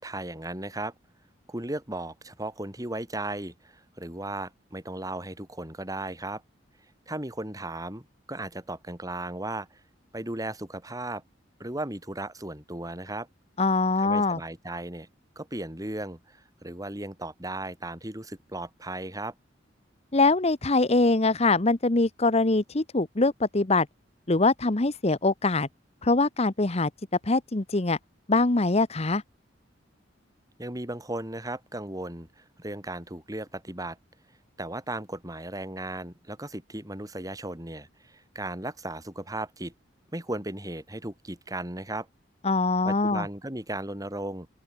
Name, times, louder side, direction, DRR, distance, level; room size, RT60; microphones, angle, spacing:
voice 1, 0.0-0.9 1.5-6.4 7.1-9.7 10.1-11.2 11.6-13.3 14.0-15.1 15.4-19.3 30.6-34.0 34.6-39.7 40.1-42.1 42.9-44.5, right 1 dB, 20° right, 3.7 m, -36 dB
voice 2, 13.6-14.4 20.1-23.9 24.3-25.7 26.0-26.9 27.2-28.0 28.3-29.2 42.4-43.3, left 3 dB, 35° left, 1.0 m, -23 dB
open air
head